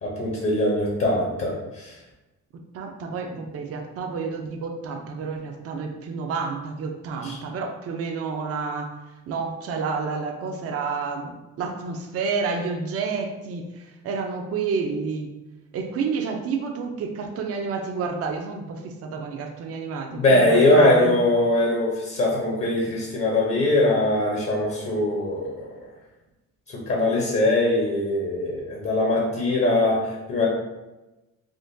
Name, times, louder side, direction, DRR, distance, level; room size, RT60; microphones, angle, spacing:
voice 1, 0.0-1.9 7.2-7.3 20.1-25.7 26.9-30.5, left 1 dB, 45° left, -3 dB, 0.8 m, -21 dB
voice 2, 2.5-8.9 9.3-15.3 15.7-21.2, right 5 dB, 50° right, 2 dB, 0.5 m, -30 dB
3.6 x 2.1 x 2.6 m, 1.0 s
cardioid pair, 90°, 30 cm